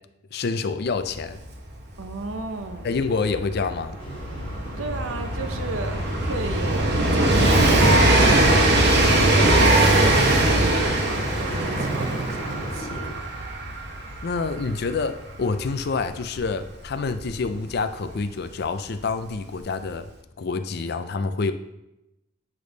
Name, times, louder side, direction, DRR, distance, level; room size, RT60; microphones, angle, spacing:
voice 1, 0.3-1.4 2.8-4.0 8.5-8.8 9.4-9.5 14.2-20.1 20.4-21.5, left 4 dB, 55° left, 10 dB, 0.5 m, -27 dB
Train, 1.1-1.2 1.4-18.0 19.0-19.1, right 1 dB, 55° right, 1.2 m, -21 dB
voice 2, 2.0-3.0 4.8-8.4 9.3-13.2, right 3 dB, 90° right, 6 dB, 0.9 m, -34 dB
sound 1, 4.0-13.1, equal, 25° left, 1.4 m, -35 dB
Skateboard, 9.2-14.0, right 2 dB, 40° right, 0.5 m, -38 dB
8.4 x 5.2 x 3.9 m, 0.92 s
head